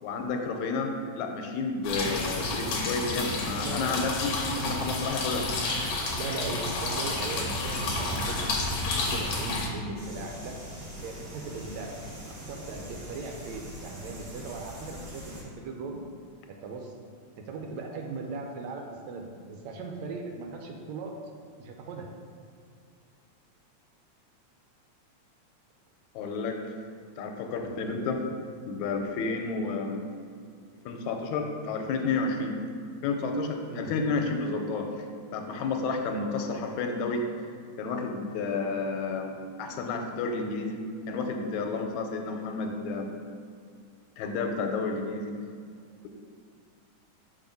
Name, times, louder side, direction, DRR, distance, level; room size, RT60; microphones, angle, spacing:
voice 1, 0.0-5.5 26.2-26.6 27.2-28.2 28.7-30.0 30.9-32.6 33.0-35.1 35.3-37.2 37.8-39.3 39.6-40.8 41.1-43.1 44.2-45.3, left 4 dB, 85° left, 3 dB, 1.9 m, -31 dB
sound 1, 1.8-9.7, left 2 dB, 70° left, 1.2 m, -30 dB
voice 2, 3.2-4.2 6.1-10.6 11.0-11.9 12.3-16.0 16.5-16.9 17.4-21.3 21.6-22.1 33.7-33.9, right 3 dB, 80° right, 2 dB, 1.8 m, -38 dB
sound 2, 10.0-15.4, equal, 45° right, 1.0 m, -43 dB
5.9 x 4.2 x 5.3 m, 2.2 s
omnidirectional pair, 3.4 m